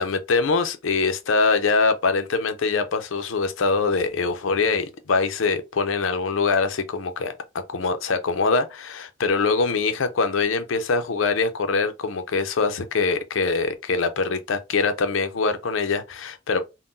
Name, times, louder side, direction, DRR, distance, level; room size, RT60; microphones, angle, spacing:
voice 1, 0.0-7.3 7.7-16.6, left 4 dB, 90° left, 0.5 m, -23 dB
3.6 x 2.1 x 2.6 m
head